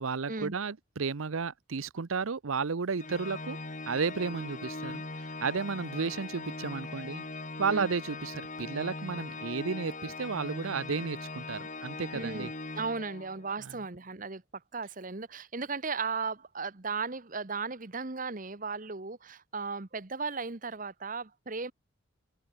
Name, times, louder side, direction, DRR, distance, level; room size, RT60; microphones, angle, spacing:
voice 1, 0.0-3.6 3.9-7.2 7.6-12.5, right 5 dB, 90° right, 0.7 m, -33 dB
Organ, 3.0-13.6, left 3 dB, 40° left, 3.8 m, -40 dB
voice 2, 12.1-14.4 14.7-21.7, right 4 dB, 40° right, 1.2 m, -36 dB
open air
head